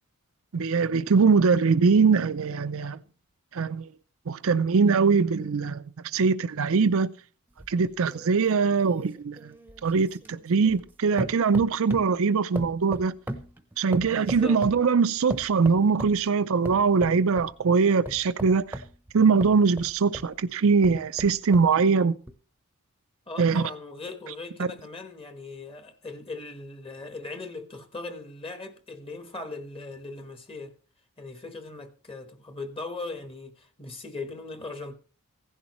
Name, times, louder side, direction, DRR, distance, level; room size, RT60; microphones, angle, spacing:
voice 1, 0.5-3.0 3.5-3.9 4.3-5.8 6.1-7.1 7.7-9.5 9.8-13.1 13.8-18.8 19.1-22.1 23.4-23.6 24.6-24.7, right 5 dB, 65° right, 0.5 m, -22 dB
sound 1, 7.6-10.9 11.2-12.2 12.6-14.9 15.3-16.2 16.7-17.5 18.1-20.3 20.8-21.7 22.3-22.4, right 1 dB, 10° right, 0.8 m, -38 dB
voice 2, 14.0-14.6 16.2-16.3 23.3-30.7 31.2-34.9, left 3 dB, 25° left, 1.3 m, -39 dB
16.0 x 11.0 x 3.1 m
head